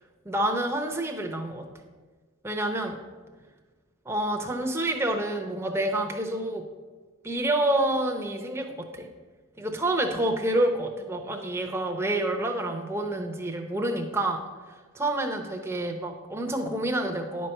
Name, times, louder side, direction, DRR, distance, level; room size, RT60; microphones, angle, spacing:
voice 1, 0.2-1.6 2.4-2.9 4.0-6.6 7.2-9.1 9.6-14.4 14.9-17.5, right 1 dB, 10° right, 2 dB, 0.8 m, -28 dB
10.5 x 4.6 x 6.6 m, 1.4 s
head